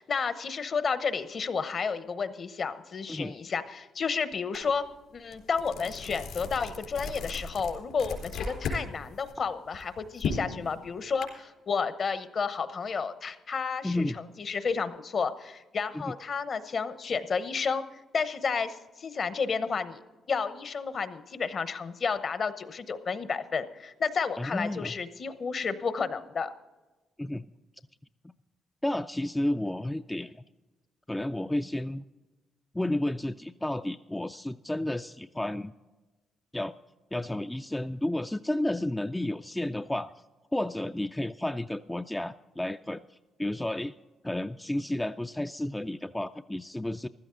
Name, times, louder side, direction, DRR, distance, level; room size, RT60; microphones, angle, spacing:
voice 1, 0.0-4.8 5.1-14.0 14.4-17.8 18.1-20.0 20.3-26.5, left 5 dB, 50° left, 12 dB, 0.9 m, -31 dB
sound 1, 4.5-4.7 5.1-8.8 9.2-11.2, left 4 dB, 80° left, 3.9 m, -36 dB
voice 2, 13.8-14.2 15.9-16.1 24.4-24.9 27.2-27.5 28.8-30.4 31.1-32.0 32.7-35.7 36.5-36.7 37.1-40.1 40.5-44.0 44.2-47.1, left 1 dB, 10° left, 8 dB, 0.3 m, -32 dB
15.0 x 13.0 x 3.9 m, 1.2 s
cardioid pair, 90°, 0 cm